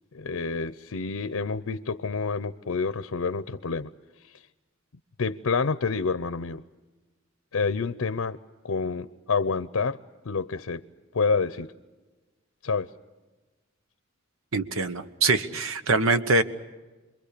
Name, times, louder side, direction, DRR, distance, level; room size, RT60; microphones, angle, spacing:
voice 1, 0.1-3.9 4.2-4.3 5.2-6.6 7.5-8.4 8.6-10.0 10.2-10.8 11.1-11.7 12.6-12.9, left 4 dB, 90° left, 12 dB, 0.7 m, -28 dB
voice 2, 14.5-16.4, right 3 dB, 80° right, 10 dB, 1.2 m, -23 dB
27.5 x 22.5 x 6.8 m, 1.2 s
head